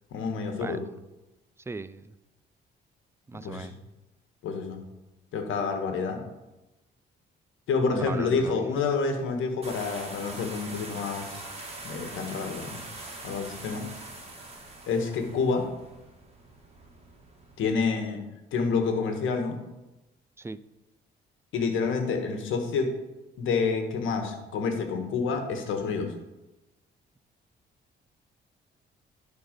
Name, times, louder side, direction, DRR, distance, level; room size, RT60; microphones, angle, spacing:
voice 1, 0.1-0.8 3.4-3.7 4.4-4.8 5.3-6.2 7.7-11.4 11.8-12.8 13.2-13.8 14.9-15.7 17.6-18.2 18.5-19.6 21.5-22.9 23.4-26.1, left 4 dB, 80° left, 5 dB, 1.5 m, -28 dB
voice 2, 1.7-2.1 3.3-3.8 7.9-8.6 20.4-20.6, right 3 dB, 15° right, 15 dB, 0.4 m, -38 dB
sound 1, 9.6-17.7, right 2 dB, 30° right, 2.1 m, -43 dB
11.5 x 4.0 x 5.2 m, 1.0 s
cardioid pair, 90°, 20 cm